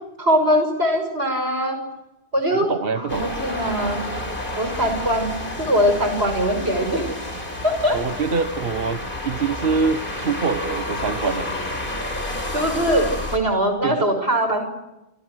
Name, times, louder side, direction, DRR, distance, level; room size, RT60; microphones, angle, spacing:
voice 1, 0.2-1.8 2.3-4.0 4.6-7.1 7.6-8.0 12.5-14.7, equal, 90° right, 7 dB, 6.6 m, -21 dB
voice 2, 2.7-3.3 7.9-11.5 13.8-14.0, right 4 dB, 65° right, 9 dB, 1.4 m, -24 dB
sound 1, 3.1-13.4, left 1 dB, 55° left, 5.1 m, -30 dB
28.0 x 27.0 x 6.4 m, 0.94 s
omnidirectional pair, 1.0 m